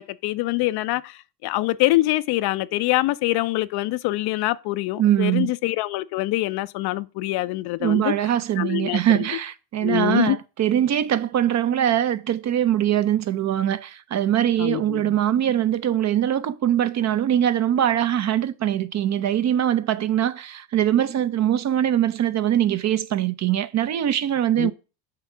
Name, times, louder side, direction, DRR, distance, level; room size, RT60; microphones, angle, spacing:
voice 1, 0.0-9.3 9.8-10.4 14.6-15.2 24.6-24.7, left 18 dB, 55° left, 0.5 m, -25 dB
voice 2, 5.0-5.5 7.8-24.7, right 11 dB, 35° right, 0.5 m, -22 dB
5.8 x 3.6 x 6.0 m
supercardioid pair, 85°, 47 cm